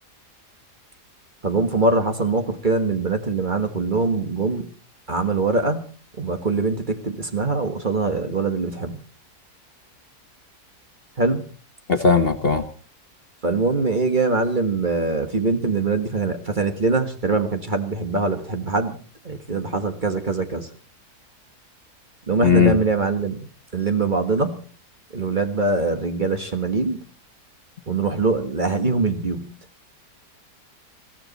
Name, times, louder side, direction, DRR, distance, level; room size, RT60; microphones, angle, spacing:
voice 1, 1.4-4.7 5.1-5.8 6.2-9.0 11.2-11.4 13.4-18.9 19.2-20.7 22.3-23.5 23.7-24.6 25.1-27.0 27.9-29.5, right 3 dB, 30° right, 7 dB, 1.5 m, -23 dB
voice 2, 11.9-12.6 22.4-22.8, left 5 dB, 40° left, 7 dB, 1.2 m, -17 dB
21.5 x 15.5 x 4.1 m, 0.41 s
omnidirectional pair, 1.7 m